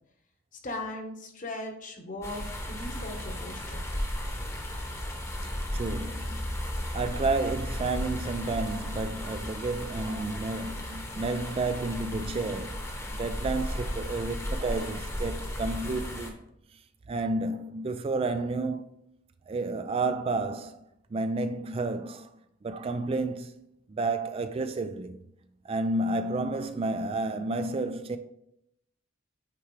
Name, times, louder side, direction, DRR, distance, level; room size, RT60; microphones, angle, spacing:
voice 1, 0.6-2.4 2.7-3.9, left 1 dB, 40° left, 1.2 m, -38 dB
sound 1, 2.2-16.3, left 1 dB, 15° left, 1.0 m, -35 dB
voice 2, 5.7-6.6 6.9-12.8 13.1-16.3 17.1-18.8 19.5-20.8 21.1-22.3 22.6-25.2 25.6-28.2, right 3 dB, 30° right, 0.3 m, -31 dB
8.8 x 4.7 x 3.2 m
head